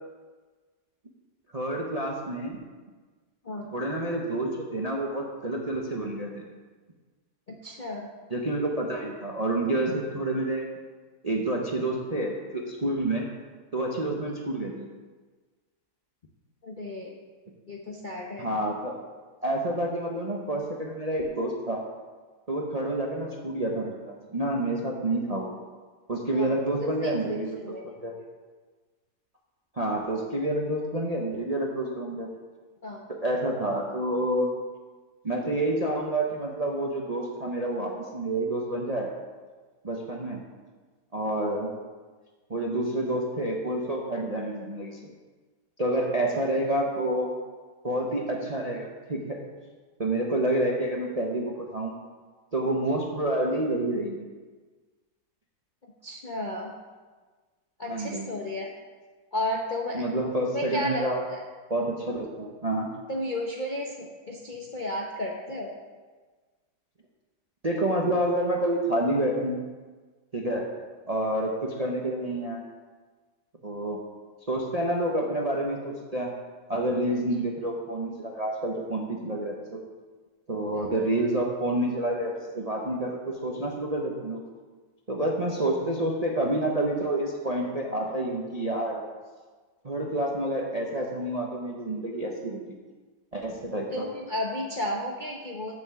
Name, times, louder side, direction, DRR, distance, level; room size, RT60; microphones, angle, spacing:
voice 1, 1.5-2.6 3.7-6.4 8.3-10.6 11.2-13.3 13.7-14.9 18.4-19.0 19.4-21.8 22.5-25.5 26.1-27.7 28.0-28.1 29.8-32.3 33.1-34.5 35.2-39.1 39.8-40.4 41.1-41.7 42.5-45.0 45.8-47.4 47.8-49.4 50.0-51.9 52.5-54.3 57.9-58.3 59.9-61.2 61.7-62.9 67.6-69.6 70.3-70.7 71.1-72.6 73.6-74.0 74.5-76.3 76.7-79.8 80.5-84.4 85.1-89.0 89.8-92.6 93.3-94.0, right 1 dB, 35° right, 0 dB, 0.6 m, -28 dB
voice 2, 7.5-8.1 16.6-17.2 17.7-18.5 26.3-26.5 26.8-27.1 27.6-28.0 32.8-33.0 56.0-56.7 57.8-58.7 59.3-60.1 60.5-61.4 63.1-65.7 77.1-77.4 80.7-80.9 93.9-95.8, left 1 dB, 40° left, -2 dB, 0.6 m, -33 dB
7.1 x 6.9 x 7.0 m, 1.4 s
omnidirectional pair, 2.0 m